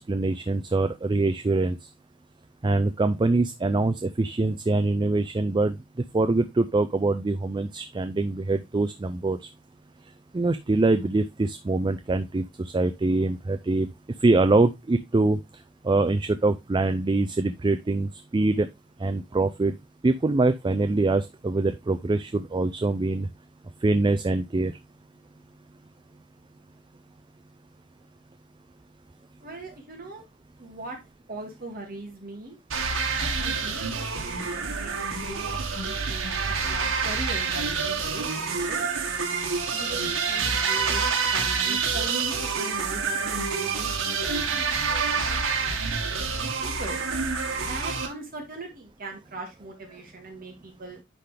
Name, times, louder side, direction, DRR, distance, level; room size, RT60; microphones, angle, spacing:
voice 1, 0.0-1.8 2.6-5.8 6.1-9.4 10.3-13.9 14.2-15.4 15.8-18.7 19.0-19.7 20.0-23.3 23.8-24.7, right 2 dB, 25° right, 10 dB, 0.4 m, -24 dB
voice 2, 29.4-30.2 30.6-31.0 31.3-32.6 33.2-34.9 35.2-38.9 39.7-41.0 41.3-43.9 44.3-47.0 47.7-51.0, right 2 dB, 45° right, 1 dB, 1.9 m, -40 dB
sound 1, 32.7-48.1, right 5 dB, 85° right, 1.6 m, -27 dB
9.9 x 3.9 x 3.3 m, 0.21 s
head